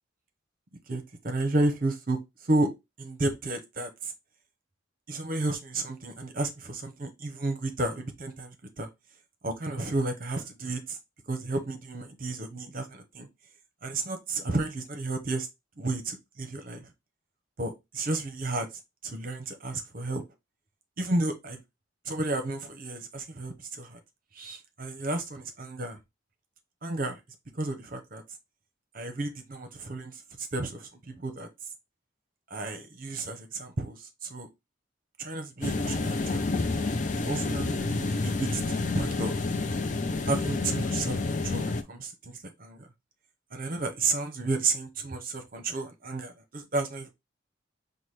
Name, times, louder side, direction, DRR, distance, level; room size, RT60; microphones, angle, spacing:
voice 1, 0.9-2.2 2.4-2.7 3.0-4.1 5.1-8.9 9.4-11.0 11.3-13.3 13.8-15.5 15.8-16.9 17.6-18.7 19.0-20.2 21.0-21.6 22.1-24.0 24.3-26.0 26.8-27.2 27.5-28.2 28.9-31.5 32.5-34.5 35.2-36.4 36.7-36.9 37.1-38.6 38.9-39.4 40.2-42.9 43.5-47.1, right 2 dB, 45° right, 0.8 m, -32 dB
sound 1, 35.6-41.8, left 3 dB, 40° left, 0.5 m, -29 dB
5.8 x 2.2 x 3.2 m
head